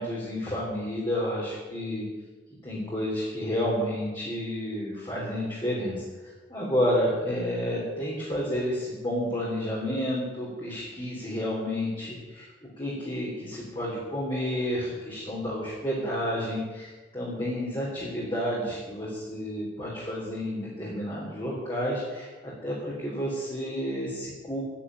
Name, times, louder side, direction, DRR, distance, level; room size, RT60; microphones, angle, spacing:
voice 1, 0.0-2.0 2.6-6.0 6.5-12.5 12.8-24.6, equal, 25° left, -7 dB, 3.5 m, -30 dB
10.5 x 9.0 x 9.7 m, 1.3 s
head